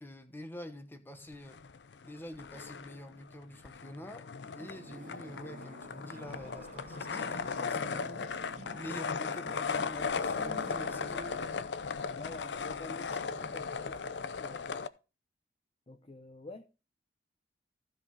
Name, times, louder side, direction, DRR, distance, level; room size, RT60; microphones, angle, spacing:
voice 1, 0.0-1.6 2.0-4.3 4.6-8.2 8.7-11.3 12.6-14.0, left 1 dB, 10° left, 1.1 m, -47 dB
sound 1, 1.3-2.1 2.4-14.9, left 5 dB, 75° left, 0.6 m, -37 dB
sound 2, 4.6-11.7, right 1 dB, 50° right, 0.9 m, -50 dB
voice 2, 9.2-9.6 12.1-13.1 13.4-14.7 15.9-16.6, left 2 dB, 35° left, 0.8 m, -49 dB
15.0 x 5.4 x 4.0 m
head